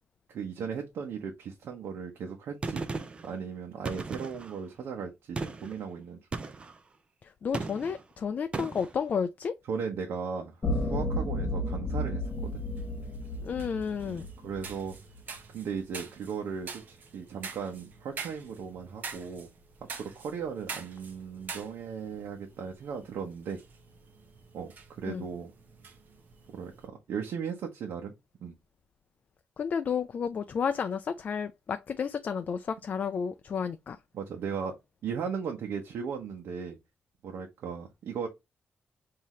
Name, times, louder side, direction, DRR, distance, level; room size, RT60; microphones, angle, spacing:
voice 1, 0.3-2.8 3.2-6.2 9.7-12.6 14.0-14.9 15.5-19.5 20.0-23.6 24.5-25.5 26.5-28.1 28.4-28.5 34.1-34.7 35.0-36.8 37.2-38.3, right 6 dB, 90° right, 0.9 m, -37 dB
Gunshot gunfire, 2.6-3.3 3.9-4.6 5.4-5.8 6.3-6.8 7.5-8.0 8.5-8.9, right 3 dB, 30° right, 0.5 m, -36 dB
voice 2, 7.2-9.6 13.4-14.3 25.1-25.2 29.6-34.0, left 6 dB, 40° left, 0.3 m, -32 dB
sound 1, 10.6-14.9, left 1 dB, 25° left, 0.8 m, -32 dB
sound 2, 12.2-26.9, right 5 dB, 50° right, 1.0 m, -46 dB
5.6 x 2.8 x 3.1 m
wide cardioid pair, 170°, 4 cm